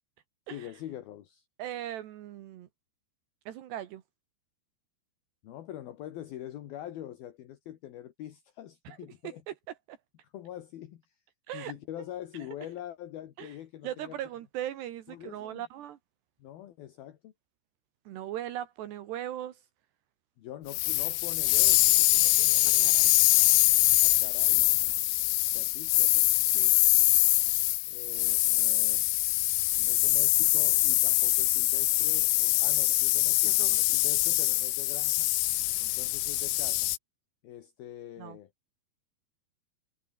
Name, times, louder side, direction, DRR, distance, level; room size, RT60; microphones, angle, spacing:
voice 1, 0.5-1.4 5.4-9.4 10.2-11.2 11.5-14.2 15.1-15.6 16.4-17.3 20.4-23.0 24.0-24.7 25.5-26.3 27.9-29.1 29.8-35.3 35.8-36.9 37.4-38.5, left 12 dB, 65° left, 3.3 m, -44 dB
voice 2, 1.6-2.7 3.5-4.0 8.9-9.0 9.2-9.6 9.9-10.0 11.5-11.8 13.4-13.5 13.8-16.0 18.1-19.6 22.8-23.2 26.5-26.7 33.4-33.8 38.2-38.4, right 12 dB, 75° right, 3.6 m, -39 dB
sound 1, 20.7-37.0, left 19 dB, 85° left, 2.9 m, -24 dB
omnidirectional pair, 5.0 m